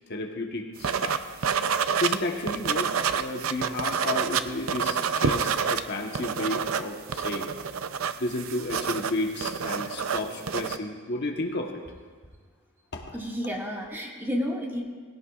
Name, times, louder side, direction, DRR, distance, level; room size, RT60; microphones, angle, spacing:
voice 1, 0.1-1.2 2.0-7.5 8.2-11.8 12.9-13.2, left 2 dB, 55° left, 2 dB, 1.1 m, -32 dB
sound 1, 0.8-2.2 2.5-5.8 6.1-10.8, right 6 dB, 80° right, 0.6 m, -28 dB
voice 2, 13.1-14.8, equal, 10° right, -2 dB, 2.0 m, -31 dB
19.5 x 16.0 x 2.4 m, 1.5 s
head